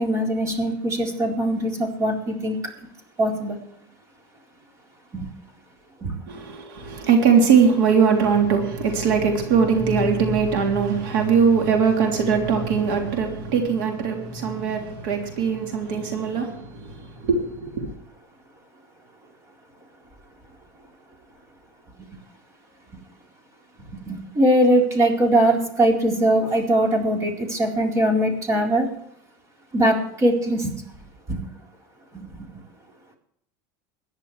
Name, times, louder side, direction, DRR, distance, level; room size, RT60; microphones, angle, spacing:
voice 1, 0.0-2.6 3.2-3.6 5.1-5.3 6.0-6.2 24.1-28.9 29.7-30.8 31.3-31.4 32.1-32.3, right 1 dB, 30° right, 4.1 m, -21 dB
voice 2, 6.3-17.9, right 6 dB, 85° right, 3.2 m, -21 dB
22.5 x 10.5 x 3.3 m
supercardioid pair, 135°, 11 cm